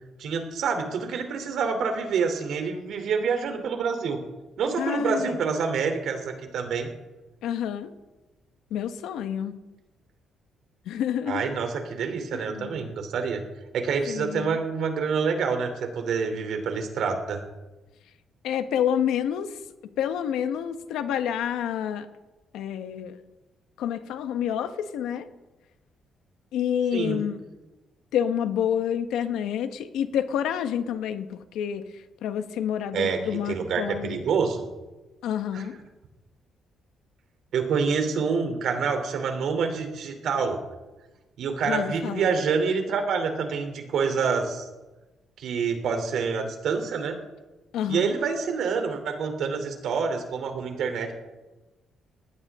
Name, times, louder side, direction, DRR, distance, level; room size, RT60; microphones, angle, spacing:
voice 1, 0.2-4.2 4.6-6.9 11.3-13.4 13.7-17.4 26.9-27.2 32.9-34.7 35.5-35.6 37.5-40.6 41.4-44.7 45.4-47.2 47.9-51.1, right 5 dB, 70° right, 5 dB, 3.3 m, -27 dB
voice 2, 4.8-5.4 7.4-7.9 8.7-9.6 10.8-11.5 12.3-12.9 14.1-14.6 18.4-19.6 20.0-22.1 22.5-23.2 23.8-25.3 26.5-27.4 28.1-34.2 35.2-35.8 41.7-42.3 47.7-48.2, left 9 dB, 90° left, 9 dB, 1.3 m, -28 dB
20.5 x 16.5 x 3.7 m, 1.1 s
cardioid pair, 115°, 0 cm